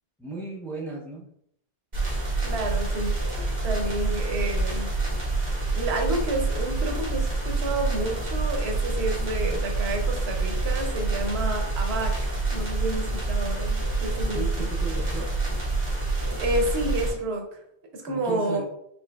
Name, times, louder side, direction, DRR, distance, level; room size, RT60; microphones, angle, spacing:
voice 1, 0.2-1.2 14.3-15.3 18.0-18.6, right 3 dB, 5° left, -2 dB, 0.4 m, -35 dB
sound 1, 1.9-17.1, right 3 dB, 45° right, 1.3 m, -27 dB
voice 2, 2.4-3.1 3.6-4.9 5.7-14.7 16.4-17.4 17.9-18.6, right 1 dB, 85° right, 3 dB, 1.0 m, -30 dB
4.4 x 2.9 x 2.3 m, 0.73 s
omnidirectional pair, 1.0 m